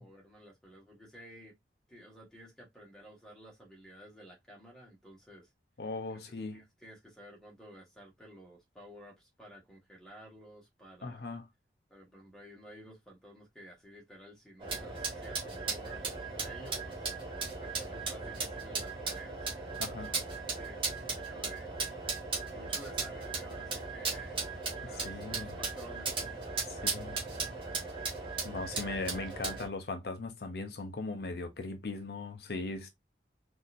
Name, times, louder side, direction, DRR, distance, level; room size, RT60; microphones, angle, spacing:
voice 1, 0.0-1.6 1.9-5.5 6.1-6.2 6.5-11.3 11.9-17.1 17.6-19.5 19.9-20.3 20.6-21.7 22.5-27.1, equal, 5° left, 1.4 m, -53 dB
voice 2, 5.8-6.6 11.0-11.4 19.8-20.1 24.8-25.5 26.7-27.2 28.4-32.9, left 3 dB, 65° left, 0.5 m, -39 dB
sound 1, 14.6-29.7, right 4 dB, 30° right, 1.2 m, -37 dB
4.0 x 2.7 x 2.5 m
head